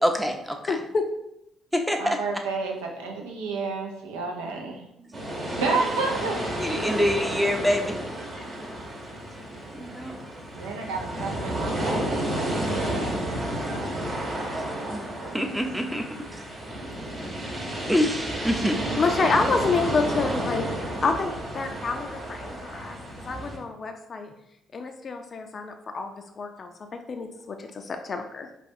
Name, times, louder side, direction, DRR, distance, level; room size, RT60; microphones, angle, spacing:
voice 1, 0.0-0.7 1.7-2.2 5.0-5.1 6.6-8.0 9.7-10.4 14.9-15.0 15.3-16.5 17.0-17.4 17.9-18.8, equal, 5° right, 4 dB, 0.6 m, -26 dB
voice 2, 0.7-1.1 6.6-7.0 19.0-23.0 23.3-24.3 24.7-28.5, left 4 dB, 45° left, 5 dB, 0.4 m, -28 dB
voice 3, 2.0-4.8 5.6-6.4 8.7-9.0 10.6-14.0 14.8-14.9 15.2-15.6 18.7-19.0, right 4 dB, 75° right, 1 dB, 0.5 m, -31 dB
sound 1, 5.1-23.6, right 1 dB, 40° right, 1.0 m, -31 dB
4.9 x 2.3 x 2.6 m, 0.81 s
hypercardioid pair, 45°, 0 cm